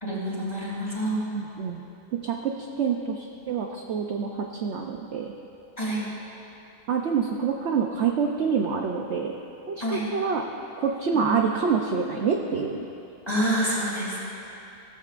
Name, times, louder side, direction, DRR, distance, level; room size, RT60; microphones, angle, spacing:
voice 1, 0.0-1.3 5.8-6.1 9.8-10.1 11.1-11.4 13.3-14.2, right 1 dB, 20° left, -6 dB, 2.9 m, -27 dB
voice 2, 1.3-1.8 2.2-5.3 6.9-9.3 9.7-10.4 10.8-12.9, right 6 dB, 60° right, 2 dB, 0.8 m, -27 dB
16.5 x 14.0 x 2.5 m, 2.8 s
omnidirectional pair, 1.6 m